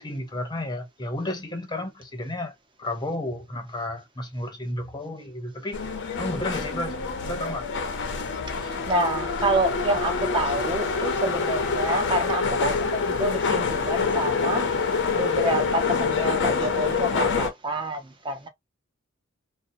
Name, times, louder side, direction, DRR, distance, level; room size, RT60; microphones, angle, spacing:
voice 1, 0.0-7.7, left 1 dB, 20° left, 0.7 m, -32 dB
sound 1, 5.7-17.5, left 5 dB, 60° left, 0.6 m, -26 dB
voice 2, 8.5-14.7 15.1-18.5, right 1 dB, 25° right, 0.7 m, -27 dB
2.7 x 2.0 x 2.5 m
head